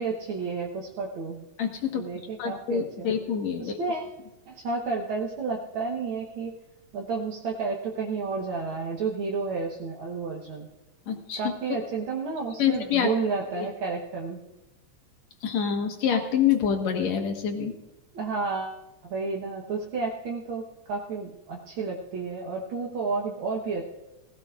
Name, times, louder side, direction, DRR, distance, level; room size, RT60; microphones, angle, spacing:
voice 1, 0.0-1.4 1.9-3.1 3.6-4.1 4.5-6.6 6.9-10.7 11.4-14.4 18.1-23.9, right 4 dB, 55° right, -1 dB, 1.6 m, -31 dB
voice 2, 1.6-2.1 2.4-3.8 11.1-11.4 11.7-11.8 12.6-13.1 13.6-13.7 15.4-17.7, left 8 dB, 70° left, 4 dB, 2.7 m, -26 dB
18.5 x 16.5 x 2.5 m, 0.99 s
omnidirectional pair, 3.4 m